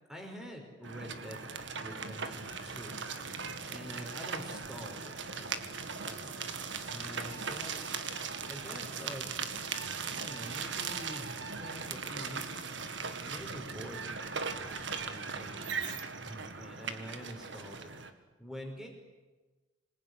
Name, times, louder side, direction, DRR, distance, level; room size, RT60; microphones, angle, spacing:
voice 1, 0.1-1.5 1.8-3.0 3.7-5.7 6.0-6.6 6.9-7.9 8.5-9.3 10.1-12.7 13.2-14.2 14.9-15.9 16.3-18.9, equal, 5° right, 2 dB, 5.5 m, -46 dB
sound 1, 0.8-18.1, right 5 dB, 65° right, 2.0 m, -39 dB
27.0 x 21.0 x 10.0 m, 1.2 s
head